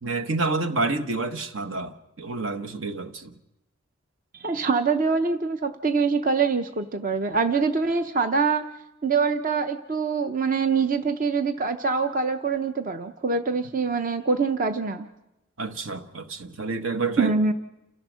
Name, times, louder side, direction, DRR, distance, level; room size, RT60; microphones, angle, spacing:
voice 1, 0.0-3.3 15.6-17.3, right 3 dB, 70° right, 1.2 m, -29 dB
voice 2, 4.3-8.7 9.0-15.1 17.2-17.5, right 4 dB, 40° right, 0.7 m, -24 dB
29.5 x 14.5 x 6.3 m
head